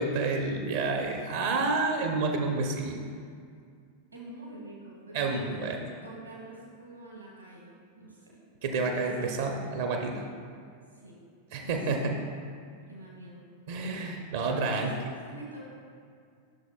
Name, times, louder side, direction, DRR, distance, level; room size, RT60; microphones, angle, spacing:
voice 1, 0.0-3.0 5.1-5.8 8.6-10.2 11.5-12.1 13.7-14.9, right 3 dB, 55° right, 2 dB, 0.7 m, -29 dB
voice 2, 4.1-8.4 8.8-9.3 10.1-10.3 10.9-11.2 11.6-12.1 12.9-13.4 14.4-14.9 15.2-15.7, right 2 dB, 80° right, -4 dB, 1.4 m, -46 dB
11.5 x 6.3 x 2.2 m, 2.2 s
figure-of-eight pair, 90°, 0 cm